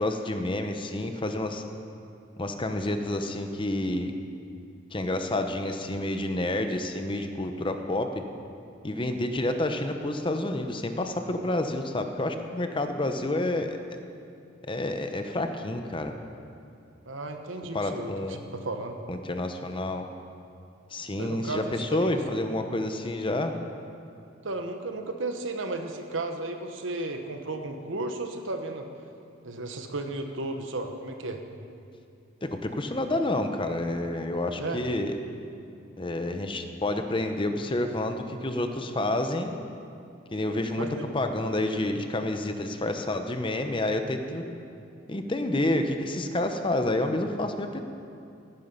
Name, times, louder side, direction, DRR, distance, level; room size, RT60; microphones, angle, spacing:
voice 1, 0.0-1.6 2.4-4.1 4.9-8.1 8.8-13.8 14.7-16.2 17.7-18.4 19.1-20.1 20.9-23.5 32.4-35.2 36.0-39.6 40.3-40.9 41.1-44.4 45.1-47.8, left 1 dB, 25° left, 6 dB, 0.8 m, -29 dB
voice 2, 17.0-19.0 21.2-22.1 24.4-28.9 29.4-31.4 34.6-34.8 40.8-41.1, right 2 dB, 75° right, 5 dB, 1.2 m, -34 dB
17.0 x 10.5 x 5.6 m, 2.5 s
head